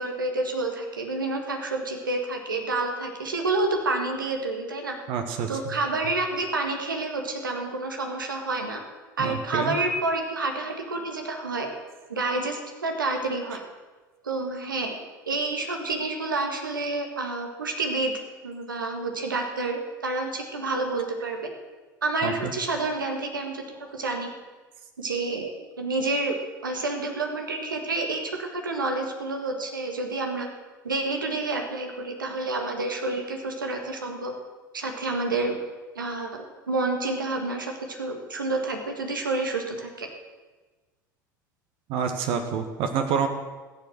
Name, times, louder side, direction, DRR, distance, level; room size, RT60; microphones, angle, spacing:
voice 1, 0.0-4.9 5.5-8.8 9.2-11.7 12.1-13.6 14.2-15.0 15.3-21.5 22.0-23.6 23.9-24.3 25.0-25.5 25.8-26.4 26.6-30.5 30.8-34.3 34.7-35.6 36.0-40.1, right 3 dB, 85° right, 3 dB, 1.7 m, -29 dB
voice 2, 5.1-5.5 9.2-9.7 22.2-22.5 41.9-43.3, right 7 dB, 55° right, 6 dB, 1.4 m, -27 dB
15.0 x 7.2 x 7.9 m, 1.3 s
hypercardioid pair, 75°, 11 cm